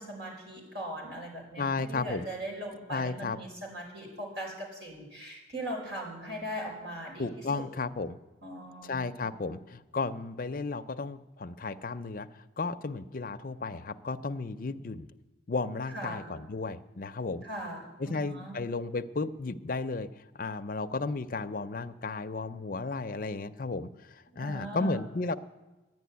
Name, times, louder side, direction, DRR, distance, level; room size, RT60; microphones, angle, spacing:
voice 1, 0.0-7.6 8.4-9.2 15.9-16.3 17.4-18.6 24.3-25.0, right 1 dB, 75° right, -1 dB, 5.2 m, -40 dB
voice 2, 1.6-2.3 2.9-3.4 7.2-8.2 8.8-12.3 12.6-15.1 15.5-17.4 18.0-20.1 20.4-25.3, left 3 dB, 45° left, 8 dB, 0.5 m, -34 dB
11.0 x 10.0 x 9.6 m, 1.1 s
head